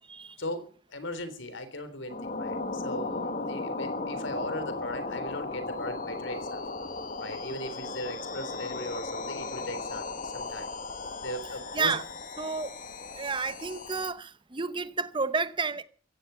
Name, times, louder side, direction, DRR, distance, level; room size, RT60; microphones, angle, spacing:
voice 1, 0.9-6.6 7.2-10.7 11.2-11.9, left 1 dB, 70° left, 3.6 m, -38 dB
sound 1, 2.1-14.1, left 3 dB, 40° left, 1.5 m, -36 dB
voice 2, 12.4-12.8 13.1-15.8, right 4 dB, 25° right, 0.8 m, -31 dB
16.0 x 16.0 x 5.7 m
head